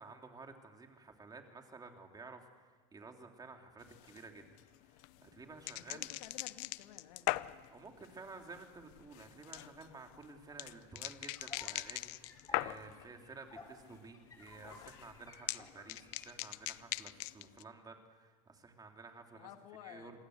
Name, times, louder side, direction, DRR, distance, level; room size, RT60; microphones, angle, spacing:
voice 1, 0.0-4.4 4.9-6.1 7.7-19.5 19.8-20.2, right 4 dB, 20° right, 3 dB, 3.5 m, -53 dB
sound 1, 3.8-13.1 13.4-14.0 14.2-17.6, left 20 dB, 70° left, 0.8 m, -42 dB
voice 2, 5.8-7.3 19.3-20.2, left 12 dB, 85° left, 7 dB, 2.3 m, -53 dB
sound 2, 10.4-16.4, left 3 dB, 20° left, 7.2 m, -57 dB
27.5 x 21.0 x 8.1 m, 1.4 s
supercardioid pair, 115°, 19 cm